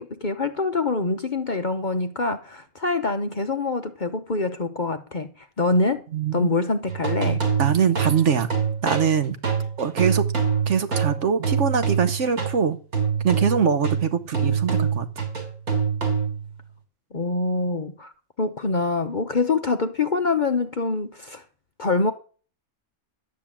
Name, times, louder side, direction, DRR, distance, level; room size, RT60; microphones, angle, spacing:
voice 1, 0.0-5.3 5.6-6.0 6.3-7.4 17.1-18.1 18.4-21.4 21.8-22.1, left 3 dB, 40° left, 0.9 m, -25 dB
voice 2, 6.1-6.5 7.6-8.5 8.8-9.4 9.8-10.3 10.7-12.8 13.2-15.2, right 7 dB, 55° right, 1.2 m, -23 dB
sound 1, 6.9-12.6 12.9-16.5, right 6 dB, 80° right, 3.5 m, -25 dB
11.5 x 8.9 x 7.4 m
omnidirectional pair, 1.5 m